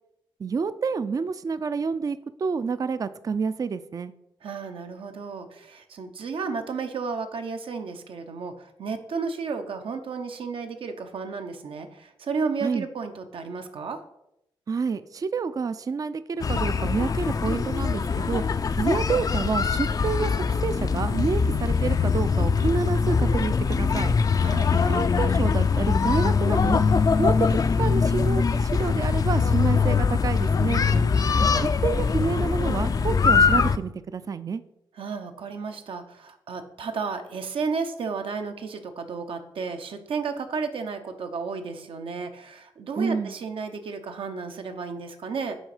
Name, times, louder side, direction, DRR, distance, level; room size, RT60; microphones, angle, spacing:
voice 1, 0.4-4.1 12.6-12.9 14.7-24.2 24.8-26.8 27.1-30.9 31.4-34.6 43.0-43.3, right 5 dB, 40° right, 13 dB, 0.4 m, -29 dB
voice 2, 4.4-14.0 24.4-24.7 30.9-31.5 34.9-45.6, right 5 dB, 80° right, 6 dB, 0.8 m, -33 dB
sound 1, 16.4-33.8, left 5 dB, 45° left, 0.4 m, -22 dB
6.3 x 4.3 x 4.9 m, 0.82 s
cardioid pair, 70°, 9 cm